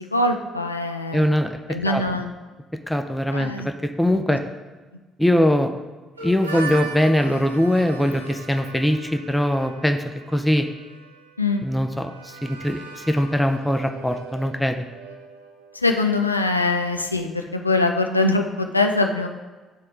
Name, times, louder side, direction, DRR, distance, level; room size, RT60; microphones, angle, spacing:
voice 1, 0.0-1.2 1.7-2.3 3.3-3.7 11.4-11.6 15.7-19.3, left 2 dB, 85° left, 4 dB, 0.3 m, -22 dB
voice 2, 1.1-1.6 1.9-2.2 2.9-4.4 5.2-5.7 6.2-10.7 11.6-14.8, equal, 5° left, 6 dB, 0.5 m, -22 dB
Harmonica, 6.2-15.8, right 3 dB, 85° right, 0.5 m, -39 dB
11.0 x 4.3 x 2.4 m, 1.3 s
figure-of-eight pair, 45°, 0 cm